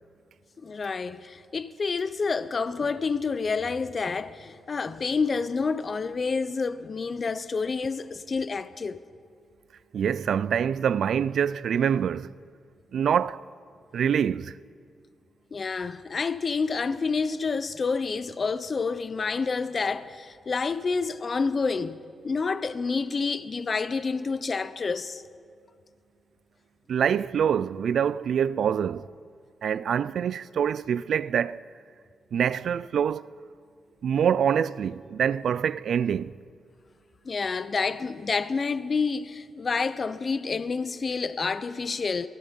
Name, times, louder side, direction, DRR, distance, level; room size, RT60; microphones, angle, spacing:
voice 1, 0.6-9.0 15.5-22.0 22.2-25.2 37.2-42.3, left 4 dB, 45° left, 0.9 m, -28 dB
voice 2, 9.9-12.3 12.9-13.4 13.9-14.6 26.9-29.1 29.6-31.6 32.3-33.3 34.0-36.3, right 8 dB, 75° right, 0.4 m, -25 dB
27.5 x 19.0 x 5.5 m
cardioid pair, 70°, 0 cm